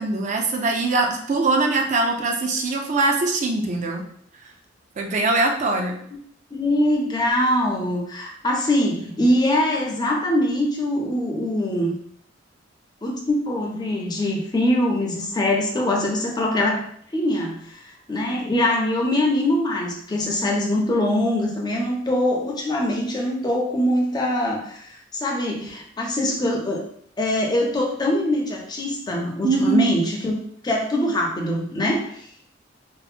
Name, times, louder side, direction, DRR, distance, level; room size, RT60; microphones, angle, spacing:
voice 1, 0.0-4.0 5.0-5.9 29.4-29.9, right 3 dB, 40° right, 2 dB, 0.4 m, -22 dB
voice 2, 6.5-12.0 13.0-17.8 18.1-26.8 27.2-32.2, left 1 dB, 20° left, 0 dB, 0.4 m, -23 dB
2.7 x 2.0 x 2.4 m, 0.65 s
head